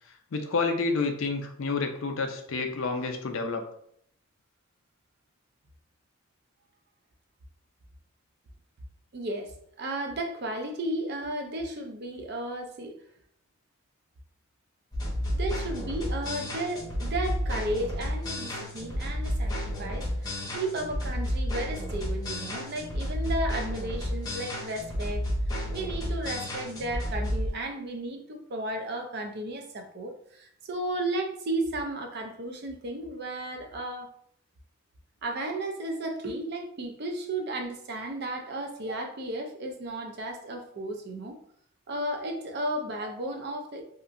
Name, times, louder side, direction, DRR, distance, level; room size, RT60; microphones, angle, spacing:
voice 1, 0.3-3.6, left 4 dB, 60° left, 5 dB, 0.4 m, -29 dB
voice 2, 9.1-12.9 15.3-25.2 25.7-34.1 35.2-41.4 41.9-43.8, right 1 dB, 45° right, 4 dB, 0.4 m, -34 dB
sound 1, 14.9-27.5, equal, 15° left, 0.6 m, -31 dB
2.8 x 2.4 x 2.4 m, 0.67 s
head